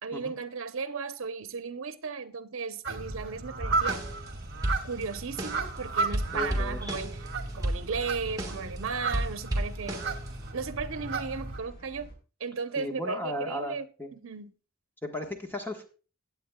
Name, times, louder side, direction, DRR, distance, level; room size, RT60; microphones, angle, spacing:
voice 1, 0.0-4.0 4.8-7.2 7.5-10.0 10.5-12.1 12.4-13.9 14.1-14.5, right 5 dB, 75° right, 0.8 m, -35 dB
sound 1, 2.8-11.6, right 3 dB, 50° right, 1.7 m, -34 dB
sound 2, 3.8-4.3 4.6-5.8 6.1-8.8 9.1-10.5, right 1 dB, 15° right, 1.5 m, -33 dB
sound 3, 5.5-12.1, right 1 dB, 55° left, 4.1 m, -45 dB
voice 2, 6.3-7.0 12.8-14.1 15.0-15.8, left 1 dB, 10° left, 1.4 m, -35 dB
17.0 x 8.1 x 2.3 m
head